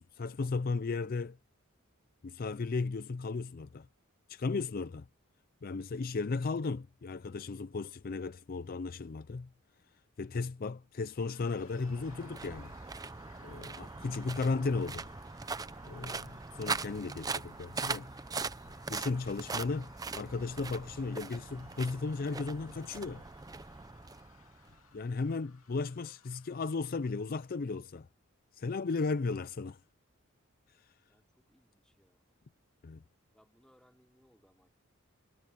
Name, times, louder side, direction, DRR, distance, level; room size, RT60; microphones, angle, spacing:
voice 1, 0.0-1.4 2.2-3.9 4.3-5.1 5.6-9.5 10.2-12.7 13.4-15.1 15.8-18.1 18.9-23.2 24.9-28.1 28.5-29.8 32.8-33.0, left 4 dB, 45° left, 0.5 m, -35 dB
voice 2, 10.4-10.9 31.1-32.3 33.3-34.7, equal, 5° left, 4.1 m, -68 dB
sound 1, 11.2-27.5, left 7 dB, 75° left, 2.6 m, -63 dB
sound 2, 11.4-24.8, right 4 dB, 15° right, 0.5 m, -41 dB
head